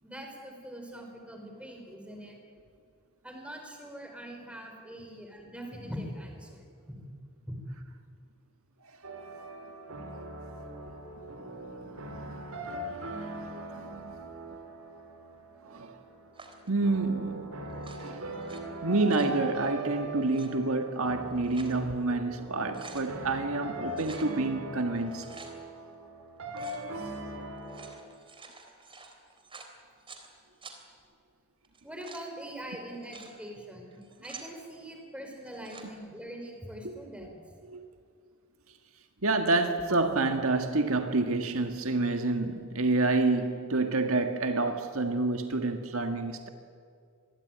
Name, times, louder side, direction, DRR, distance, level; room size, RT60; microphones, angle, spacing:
voice 1, 0.0-2.4 3.2-7.0 7.5-7.6 31.8-37.4, equal, 5° right, 5.0 m, -43 dB
sound 1, 9.0-27.9, right 1 dB, 85° right, 4.5 m, -41 dB
voice 2, 12.0-13.1 13.4-14.2 15.6-16.0 16.7-17.5 18.0-18.3 18.8-25.3 27.0-27.1 36.8-36.9 37.7-37.8 39.2-46.5, right 3 dB, 70° right, 1.8 m, -28 dB
sound 2, 16.3-16.7 17.7-18.6 18.9-19.4 20.2-20.5 21.2-21.8 22.2-22.3 22.6-23.1 23.9-24.3 25.0-25.5 26.5-26.8 27.6-30.3 30.6-30.8 31.6-32.3 32.9-33.3 33.9-34.5 35.4-35.9, right 4 dB, 25° right, 3.3 m, -49 dB
26.0 x 21.0 x 9.4 m
head